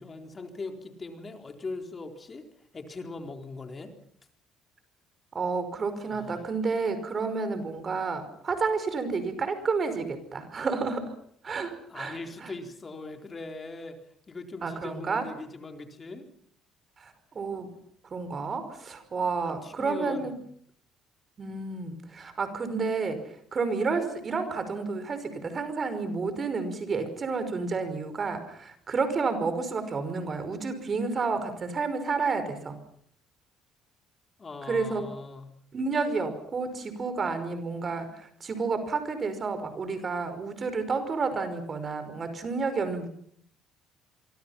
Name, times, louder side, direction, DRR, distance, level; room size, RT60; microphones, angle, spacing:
voice 1, 0.0-3.9 6.0-6.5 11.9-14.0 14.3-16.3 19.4-20.4 34.4-35.5, left 3 dB, 30° left, 5 dB, 4.2 m, -40 dB
voice 2, 5.3-11.1 11.4-12.5 14.6-15.2 17.0-17.7 18.0-20.3 21.4-23.2 23.5-32.8 34.7-35.1 35.7-43.1, right 4 dB, 40° right, 11 dB, 5.3 m, -30 dB
27.0 x 24.5 x 5.8 m, 0.63 s
supercardioid pair, 80°, 0 cm